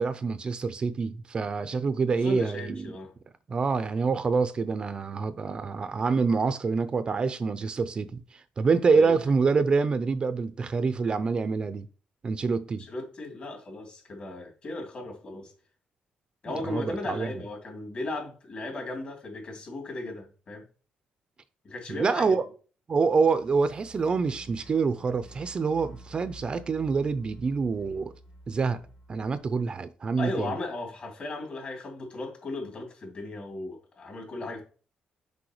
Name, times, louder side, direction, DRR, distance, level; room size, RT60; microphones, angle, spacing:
voice 1, 0.0-2.9 3.5-11.9 12.2-12.8 16.6-17.3 21.9-22.4 22.9-28.1 28.5-28.8 29.1-30.5, right 4 dB, 35° right, 0.4 m, -26 dB
voice 2, 2.1-3.1 8.9-9.2 12.8-15.5 16.4-20.6 21.6-22.3 30.2-34.6, left 2 dB, 45° left, 2.8 m, -36 dB
sound 1, 23.1-29.4, right 1 dB, 70° left, 2.8 m, -50 dB
6.2 x 5.3 x 3.0 m
cardioid pair, 120°, 3 cm